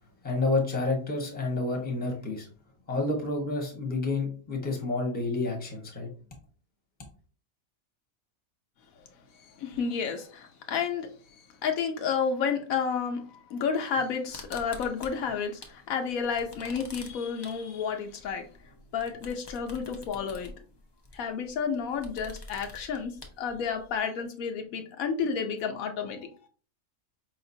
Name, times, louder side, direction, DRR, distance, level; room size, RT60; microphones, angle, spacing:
voice 1, 0.2-2.5 2.9-6.1, left 3 dB, 10° left, 1 dB, 0.8 m, -29 dB
voice 2, 9.4-18.4 18.9-20.5 21.1-26.3, left 6 dB, 80° left, 4 dB, 1.1 m, -31 dB
sound 1, 14.3-15.8 16.1-24.0, left 2 dB, 35° left, 0.4 m, -47 dB
4.9 x 2.9 x 2.6 m, 0.39 s
omnidirectional pair, 1.5 m